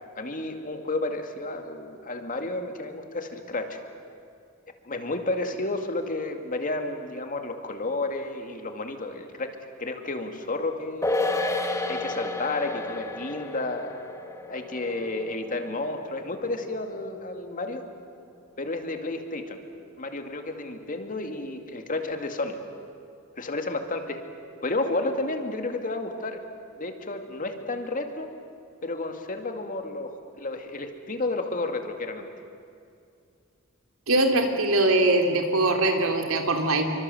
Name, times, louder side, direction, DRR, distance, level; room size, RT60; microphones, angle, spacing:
voice 1, 0.2-3.8 4.8-11.2 11.9-14.0 14.5-17.8 18.6-19.6 20.0-22.6 23.4-24.2 24.6-26.4 26.8-28.3 28.8-32.3, left 2 dB, 40° left, 5 dB, 2.3 m, -31 dB
sound 1, 11.0-17.7 18.0-18.1, left 2 dB, 15° left, 2.1 m, -32 dB
voice 2, 34.1-36.8, right 2 dB, 85° right, 4 dB, 3.2 m, -22 dB
28.5 x 24.5 x 7.8 m, 2.5 s
head